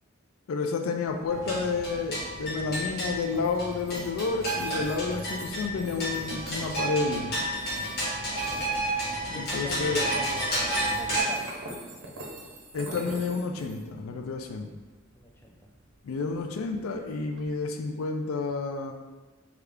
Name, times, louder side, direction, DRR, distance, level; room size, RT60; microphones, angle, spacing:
voice 1, 0.5-7.4 9.3-10.1 12.7-14.7 16.0-18.9, left 4 dB, 85° left, 4 dB, 0.4 m, -30 dB
sound 1, 1.1-17.5, right 1 dB, 70° right, 0.7 m, -47 dB
sound 2, 1.3-11.2, right 1 dB, 50° left, 1.1 m, -31 dB
voice 2, 8.4-9.0 9.3-11.7 15.1-15.7, left 1 dB, 10° left, 0 dB, 0.3 m, -42 dB
3.2 x 2.4 x 3.5 m, 1.3 s
head